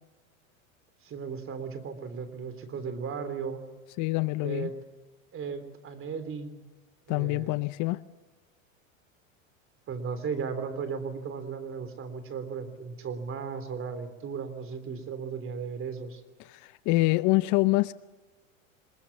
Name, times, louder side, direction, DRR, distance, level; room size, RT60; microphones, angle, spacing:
voice 1, 1.0-3.6 4.4-4.7 5.3-6.6 7.1-7.5 9.9-16.2, right 6 dB, 30° right, 10 dB, 3.5 m, -36 dB
voice 2, 4.0-4.7 7.1-8.0 16.4-17.9, left 21 dB, 45° left, 16 dB, 0.7 m, -26 dB
25.5 x 21.5 x 7.2 m, 1.2 s
hypercardioid pair, 105°, 40 cm